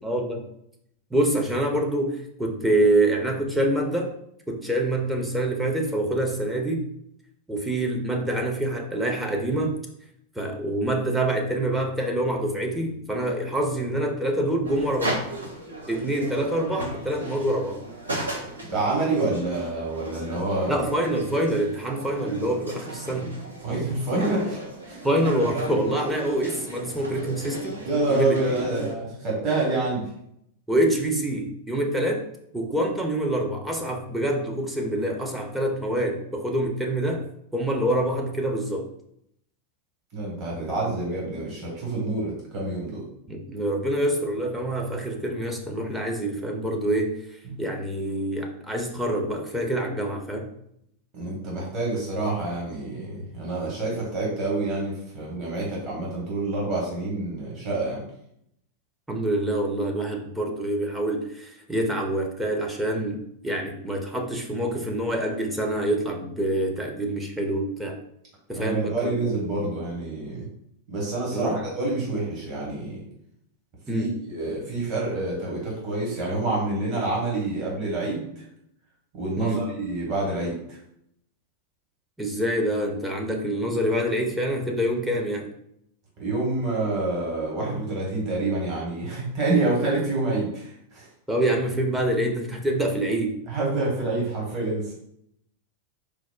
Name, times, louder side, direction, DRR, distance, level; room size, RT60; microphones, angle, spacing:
voice 1, 0.0-0.4 1.1-4.1 4.5-6.9 7.5-9.8 10.4-15.2 15.9-17.8 20.7-23.3 25.0-27.8 28.1-28.4 30.7-32.2 32.5-37.2 37.5-38.9 43.3-50.5 59.1-68.0 68.5-69.4 71.3-71.6 73.9-74.1 79.4-79.7 82.2-85.5 91.3-93.4, right 1 dB, 5° right, 1 dB, 0.5 m, -26 dB
sound 1, 14.6-28.9, right 1 dB, 80° right, 0.5 m, -36 dB
voice 2, 18.7-20.9 23.6-24.6 24.9-25.0 27.8-30.1 40.1-43.0 47.4-47.6 51.1-58.0 68.5-70.5 70.9-73.0 73.9-78.4 79.1-80.8 86.2-91.1 93.5-94.9, right 2 dB, 35° right, -4 dB, 1.0 m, -27 dB
4.5 x 2.0 x 2.2 m, 0.74 s
figure-of-eight pair, 90°, 0 cm